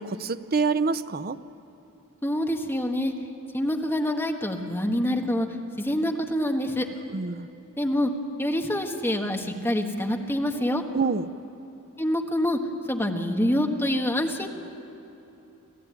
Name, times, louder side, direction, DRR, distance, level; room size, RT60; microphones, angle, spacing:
voice 1, 0.0-1.4 7.1-7.5 10.9-11.3, right 4 dB, 45° right, 12 dB, 0.6 m, -26 dB
voice 2, 2.2-3.1 3.5-5.5 5.8-6.9 7.8-8.1 8.4-10.8 12.0-12.6 12.9-14.5, left 1 dB, 10° left, 2 dB, 1.5 m, -26 dB
27.0 x 16.5 x 9.5 m, 2.9 s
head